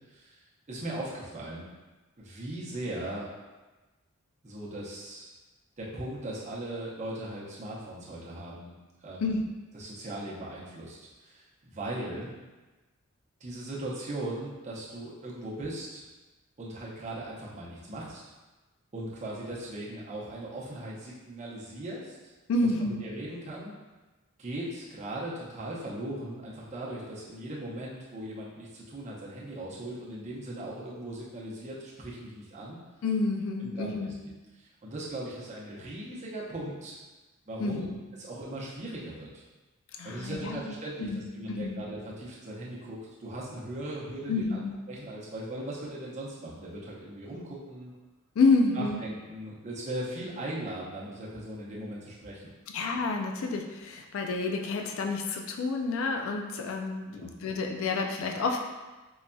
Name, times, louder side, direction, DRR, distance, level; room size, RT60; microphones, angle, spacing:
voice 1, 0.1-0.4 0.7-1.7 2.2-3.3 4.4-5.3 5.8-8.7 9.0-9.4 9.7-12.3 13.4-16.0 16.6-18.2 18.9-22.2 22.6-23.7 24.4-32.8 33.6-34.1 34.6-37.0 37.5-39.4 40.0-44.6 44.9-47.9 48.7-52.5 57.1-57.3, right 1 dB, 30° right, -6 dB, 0.7 m, -39 dB
voice 2, 22.5-23.0 33.0-34.2 37.6-38.0 40.0-41.8 44.3-44.8 48.4-49.0 52.7-58.6, left 3 dB, 60° left, 3 dB, 0.3 m, -29 dB
4.6 x 2.6 x 2.2 m, 1.2 s
head